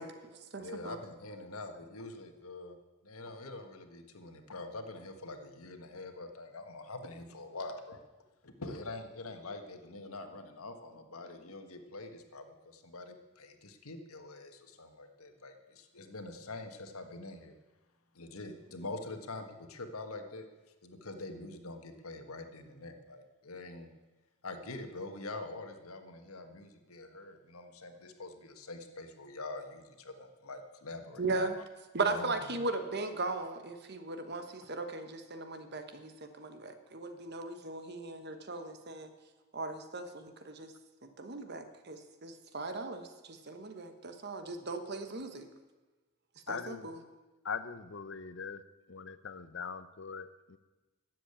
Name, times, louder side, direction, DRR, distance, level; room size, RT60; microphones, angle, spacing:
voice 1, 0.0-1.0 31.2-31.5 31.9-39.1 39.5-40.7 41.0-45.5 46.5-47.0, right 3 dB, 50° right, 8 dB, 1.2 m, -38 dB
voice 2, 0.6-2.8 3.0-8.0 8.4-17.5 18.1-20.5 20.8-23.9 24.4-31.5 32.1-32.3, left 2 dB, 85° left, 6 dB, 1.5 m, -45 dB
voice 3, 46.5-46.9 47.4-48.6 48.9-50.6, left 5 dB, 60° left, 13 dB, 0.7 m, -41 dB
13.5 x 7.7 x 8.8 m, 1.2 s
head